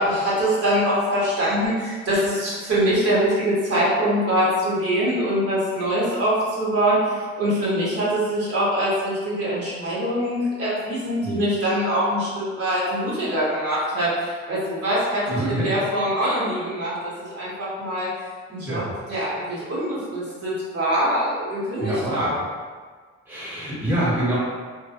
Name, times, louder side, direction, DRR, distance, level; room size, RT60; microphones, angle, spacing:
voice 1, 0.0-18.1 18.5-18.8 19.1-22.3, equal, 50° right, -8 dB, 1.0 m, -23 dB
voice 2, 15.3-15.7 18.6-18.9 21.8-22.4 23.3-24.4, right 1 dB, 5° right, -9 dB, 1.0 m, -26 dB
2.6 x 2.1 x 2.4 m, 1.5 s
cardioid pair, 90°, 30 cm